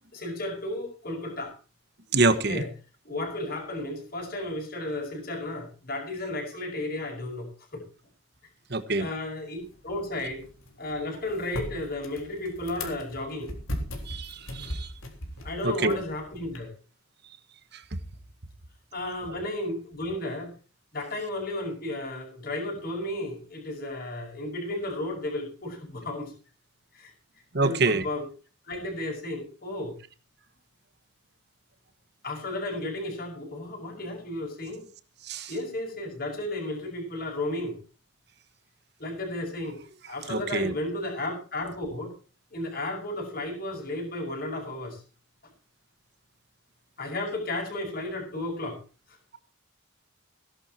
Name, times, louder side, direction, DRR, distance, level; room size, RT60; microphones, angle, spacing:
voice 1, 0.1-1.5 2.3-2.7 3.0-7.8 9.0-9.6 9.8-10.4 10.8-13.5 15.4-16.7 18.9-20.5 20.9-26.3 26.9-27.1 27.6-28.3 28.7-30.0 32.2-34.9 35.5-37.8 39.0-39.8 40.1-42.1 42.5-45.0 47.0-48.8, left 1 dB, 45° left, 5.6 m, -33 dB
voice 2, 2.1-2.6 8.7-9.1 14.1-14.9 15.6-16.0 27.5-28.0 35.3-35.5 40.3-40.7, right 3 dB, 50° right, 1.3 m, -25 dB
sound 1, 9.6-16.6, left 1 dB, 80° left, 3.8 m, -39 dB
17.0 x 11.0 x 4.4 m
head